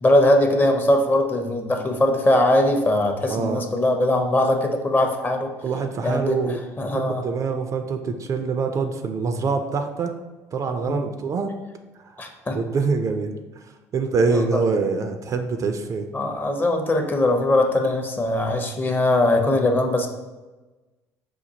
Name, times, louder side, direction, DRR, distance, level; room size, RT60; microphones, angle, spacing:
voice 1, 0.0-5.5 6.0-7.2 10.9-11.0 12.2-12.6 14.3-14.6 16.1-20.1, left 1 dB, 25° left, 4 dB, 0.6 m, -21 dB
voice 2, 3.3-3.6 5.6-6.6 6.9-10.1 10.5-11.6 12.0-12.2 12.5-13.7 13.9-16.1, right 4 dB, 40° right, 7 dB, 0.3 m, -25 dB
4.3 x 2.2 x 2.8 m, 1.2 s
hypercardioid pair, 65°, 8 cm